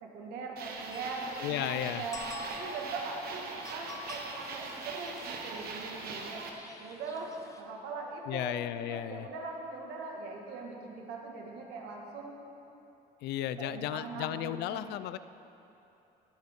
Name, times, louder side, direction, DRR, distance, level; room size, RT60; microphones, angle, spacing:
voice 1, 0.0-6.4 6.8-12.3 13.6-14.9, right 3 dB, 90° right, 0 dB, 1.8 m, -41 dB
sound 1, 0.6-6.5, right 4 dB, 65° right, 1.4 m, -41 dB
sound 2, 0.9-7.6, left 3 dB, 20° left, 1.0 m, -49 dB
voice 2, 1.4-2.0 8.3-9.3 13.2-15.2, left 13 dB, 80° left, 14 dB, 0.4 m, -34 dB
19.5 x 7.6 x 3.7 m, 2.9 s
cardioid pair, 110°, 17 cm